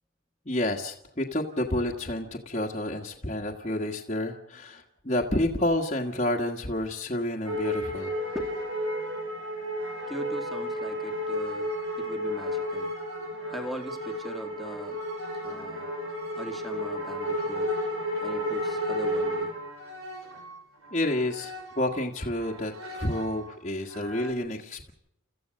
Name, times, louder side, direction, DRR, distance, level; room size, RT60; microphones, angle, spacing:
voice 1, 0.4-8.1 20.9-24.9, left 1 dB, 30° left, -1 dB, 1.6 m, -29 dB
sound 1, 7.4-22.0 22.3-23.5 23.9-24.3, equal, 70° right, 5.0 m, -33 dB
voice 2, 10.1-12.9 13.5-15.0 15.4-15.9 16.4-17.7 18.2-19.5, equal, ahead, 4 dB, 2.0 m, -40 dB
29.5 x 14.5 x 6.5 m, 0.76 s
head